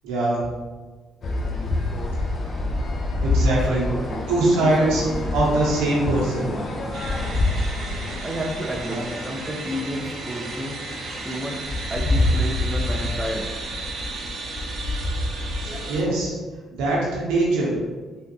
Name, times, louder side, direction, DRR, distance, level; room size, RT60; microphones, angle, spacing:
voice 1, 0.0-0.4 3.2-3.9 4.3-5.0 5.3-6.5 8.9-9.0 15.6-16.3 16.7-17.7, right 2 dB, 85° right, -5 dB, 0.9 m, -22 dB
sound 1, 1.2-15.9, left 2 dB, 50° left, 0.7 m, -27 dB
voice 2, 3.4-4.0 4.6-5.1 7.7-7.8 8.2-10.8 11.2-11.6 11.9-13.5, equal, 15° right, 1 dB, 0.4 m, -31 dB
sound 2, 6.9-16.0, right 3 dB, 65° right, 0.6 m, -35 dB
3.5 x 2.5 x 2.8 m, 1.3 s
supercardioid pair, 60°, 0 cm